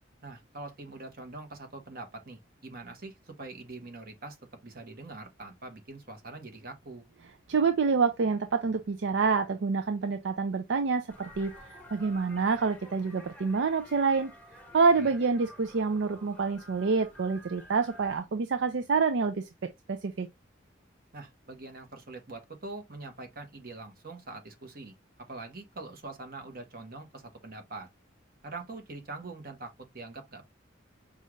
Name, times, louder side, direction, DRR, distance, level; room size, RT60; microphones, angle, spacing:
voice 1, 0.2-4.4 4.6-7.0 14.9-15.1 21.1-27.9 28.4-30.4, right 2 dB, 50° right, 1.1 m, -44 dB
voice 2, 7.5-11.5 11.9-14.3 14.7-20.3, right 4 dB, 70° right, 0.5 m, -27 dB
sound 1, 11.1-18.2, equal, 10° left, 0.8 m, -51 dB
5.4 x 2.4 x 3.1 m
head